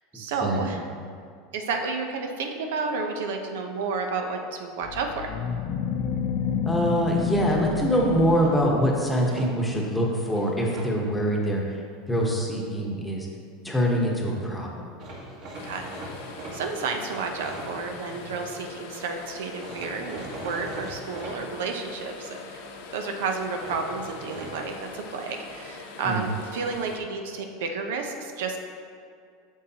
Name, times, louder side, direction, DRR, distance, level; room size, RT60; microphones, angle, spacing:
voice 1, 0.1-0.9 1.5-5.3 15.6-15.9 16.5-22.7 22.9-28.6, right 4 dB, 85° right, 4 dB, 0.7 m, -31 dB
sound 1, 4.8-9.2, left 7 dB, 50° left, 0.5 m, -29 dB
voice 2, 6.7-11.8 12.1-13.3 13.6-14.7 26.0-26.2, equal, 5° left, -2 dB, 1.1 m, -24 dB
sound 2, 7.1-8.5 9.1-9.8 10.3-10.9 14.0-14.1 14.3-14.4 15.0-18.5 19.6-21.3 23.6-24.5, right 1 dB, 45° right, 1.6 m, -41 dB
sound 3, 15.5-27.0, left 4 dB, 75° left, 0.9 m, -42 dB
8.2 x 6.4 x 2.9 m, 2.3 s
supercardioid pair, 140°, 0 cm